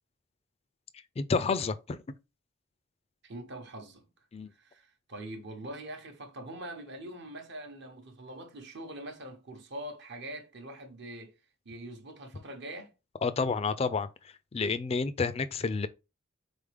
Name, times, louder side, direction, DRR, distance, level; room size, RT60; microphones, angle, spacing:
voice 1, 1.2-2.0 4.3-4.5 13.2-14.1 14.5-15.9, left 4 dB, 30° left, 0.3 m, -29 dB
voice 2, 3.2-4.1 4.5-11.4 11.6-12.9, right 1 dB, 55° right, 0.9 m, -43 dB
4.1 x 3.5 x 3.3 m
head